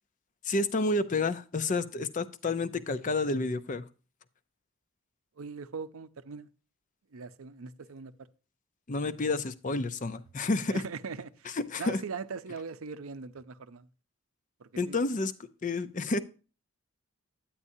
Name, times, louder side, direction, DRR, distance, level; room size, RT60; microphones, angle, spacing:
voice 1, 0.4-3.9 8.9-10.8 11.5-12.0 14.8-15.3 15.6-16.2, left 3 dB, 35° left, 0.5 m, -30 dB
voice 2, 5.4-6.5 7.1-8.3 10.7-11.5 11.8-13.9 14.6-15.1, right 5 dB, 75° right, 0.6 m, -40 dB
9.7 x 8.6 x 2.7 m
head